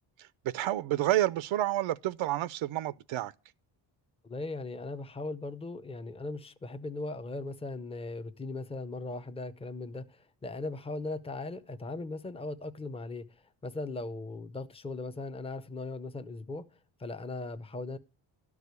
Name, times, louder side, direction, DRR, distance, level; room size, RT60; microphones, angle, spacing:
voice 1, 0.2-3.3, right 14 dB, 80° right, 0.6 m, -29 dB
voice 2, 4.2-16.7 17.0-18.0, left 2 dB, 15° left, 0.6 m, -38 dB
12.5 x 4.9 x 8.1 m
cardioid pair, 145°, 47 cm